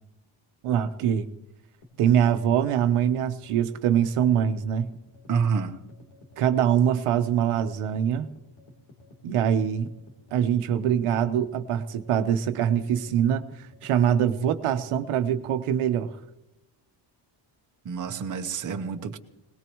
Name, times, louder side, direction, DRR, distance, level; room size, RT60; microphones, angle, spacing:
voice 1, 0.6-1.3 2.0-4.9 6.4-8.3 9.2-9.9 10.3-16.2, right 9 dB, 90° right, 8 dB, 1.1 m, -23 dB
sound 1, 1.8-16.1, left 1 dB, 90° left, 3.6 m, -52 dB
voice 2, 5.3-5.7 17.8-19.2, right 6 dB, 35° right, 4 dB, 1.0 m, -28 dB
21.5 x 19.5 x 3.1 m, 0.93 s
cardioid pair, 145°, 50 cm